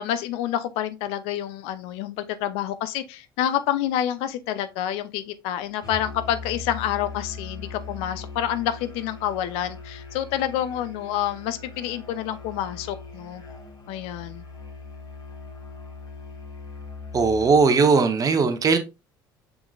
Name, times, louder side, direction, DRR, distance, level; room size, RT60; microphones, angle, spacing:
voice 1, 0.0-13.4 13.9-14.4, left 11 dB, 60° left, 0.5 m, -28 dB
Musical instrument, 5.8-17.7, left 4 dB, 35° left, 2.1 m, -40 dB
voice 2, 17.1-18.8, right 4 dB, 35° right, 0.9 m, -19 dB
5.9 x 3.8 x 2.3 m
figure-of-eight pair, 65°, 11 cm